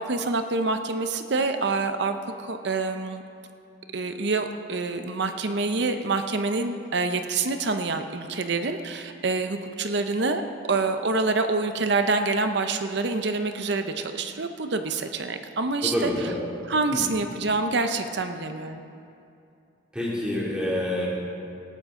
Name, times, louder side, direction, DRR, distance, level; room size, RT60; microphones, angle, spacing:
voice 1, 0.0-3.2 3.9-10.4 10.7-16.1 16.7-18.8, right 3 dB, 60° right, 7 dB, 0.7 m, -26 dB
voice 2, 15.8-16.4 16.9-17.1 19.9-21.1, left 1 dB, 5° right, -6 dB, 2.7 m, -27 dB
19.0 x 13.0 x 3.7 m, 2.6 s
head